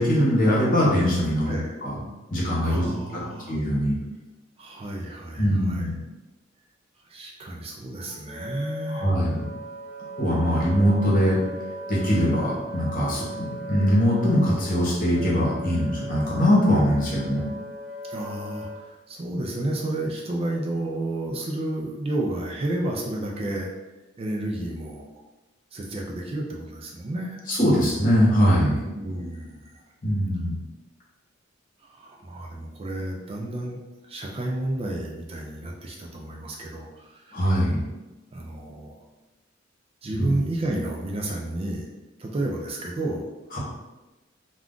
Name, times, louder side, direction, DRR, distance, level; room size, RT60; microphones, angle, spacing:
voice 1, 0.0-1.5 1.8-2.0 2.3-2.8 3.5-3.9 5.4-5.9 8.9-9.5 10.2-11.4 11.9-17.4 27.5-28.8 30.0-30.5 37.3-37.8 40.1-40.3 43.5-43.6, equal, 45° left, -5 dB, 1.0 m, -22 dB
voice 2, 1.5-1.8 2.6-3.6 4.6-5.9 7.1-9.1 10.5-10.6 18.1-23.7 24.2-25.2 25.7-27.4 28.9-29.8 31.8-33.8 34.1-37.5 38.3-39.0 40.0-41.9 42.2-43.3, right 1 dB, 30° right, 0 dB, 0.4 m, -31 dB
Wind instrument woodwind instrument, 7.9-18.8, right 1 dB, 80° right, 0.8 m, -38 dB
2.4 x 2.3 x 3.6 m, 1.1 s
head